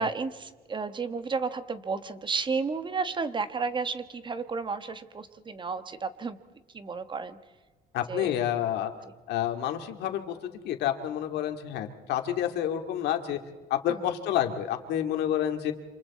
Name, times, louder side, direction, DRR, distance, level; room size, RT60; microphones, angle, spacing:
voice 1, 0.0-6.4 6.7-7.4 8.1-8.4 13.9-14.0, right 4 dB, 30° right, 11 dB, 1.3 m, -32 dB
voice 2, 7.9-8.9 9.3-10.4 10.6-13.4 13.7-15.7, left 10 dB, 80° left, 5 dB, 2.2 m, -29 dB
28.5 x 27.0 x 4.3 m, 1.3 s
cardioid pair, 110°, 17 cm